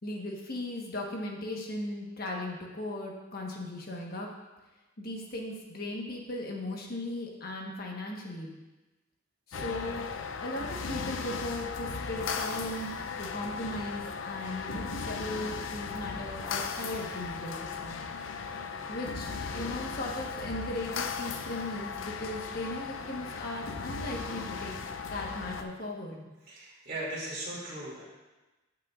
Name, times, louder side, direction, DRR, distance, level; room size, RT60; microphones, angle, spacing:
voice 1, 0.0-4.3 5.0-8.5 9.5-10.1 10.4-18.0 18.9-24.8 25.1-26.2, left 1 dB, 50° left, -1 dB, 1.3 m, -37 dB
sound 1, 9.5-25.6, left 5 dB, 85° left, 0.6 m, -37 dB
voice 2, 26.5-28.0, right 1 dB, 50° right, -7 dB, 2.7 m, -38 dB
15.0 x 5.6 x 2.5 m, 1.1 s
head